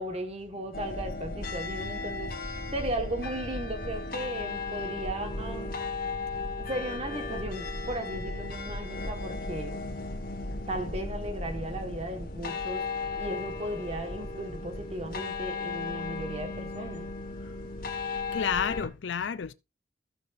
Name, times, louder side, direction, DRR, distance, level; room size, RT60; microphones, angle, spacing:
voice 1, 0.0-5.8 6.6-9.8 10.7-12.9 13.2-17.1, right 1 dB, 35° right, 1.5 m, -36 dB
sound 1, 0.7-18.9, left 3 dB, 55° left, 2.0 m, -35 dB
voice 2, 18.3-19.5, left 7 dB, 80° left, 0.5 m, -30 dB
15.5 x 6.6 x 2.6 m
head